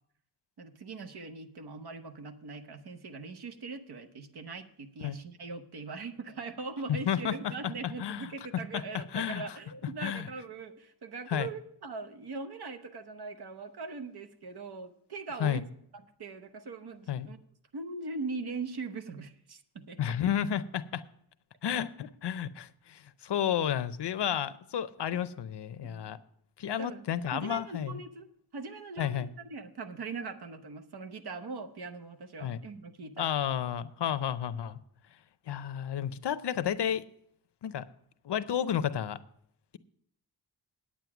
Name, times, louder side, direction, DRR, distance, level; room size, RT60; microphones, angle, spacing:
voice 1, 0.6-15.6 16.2-17.4 17.7-20.2 25.1-25.2 25.8-26.1 26.6-27.0 27.3-28.3 28.5-33.3, right 4 dB, 65° right, 8 dB, 1.0 m, -41 dB
voice 2, 9.1-9.4 10.0-10.3 11.3-11.5 15.4-15.6 17.1-17.3 20.0-21.0 21.6-26.2 26.6-28.0 29.0-29.3 32.4-32.6 33.2-34.8 35.5-37.1 37.6-37.9 38.2-39.2, left 9 dB, 75° left, 14 dB, 0.6 m, -31 dB
9.3 x 8.8 x 5.9 m, 0.69 s
wide cardioid pair, 170°, 42 cm